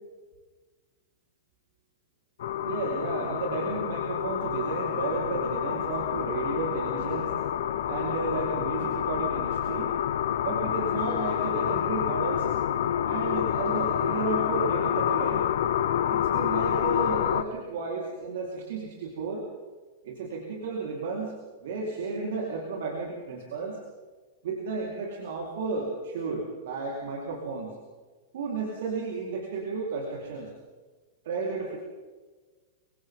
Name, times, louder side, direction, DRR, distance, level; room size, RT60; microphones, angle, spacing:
sound 1, 2.4-17.4, left 10 dB, 60° left, 1.2 m, -28 dB
voice 1, 2.6-7.3 7.9-9.9 10.4-12.5 13.0-15.4 16.1-19.4 20.0-23.8 24.4-27.8 28.3-30.5 31.2-31.8, right 4 dB, 60° right, -2 dB, 4.6 m, -33 dB
27.0 x 25.5 x 4.0 m, 1.3 s
figure-of-eight pair, 100°, 0 cm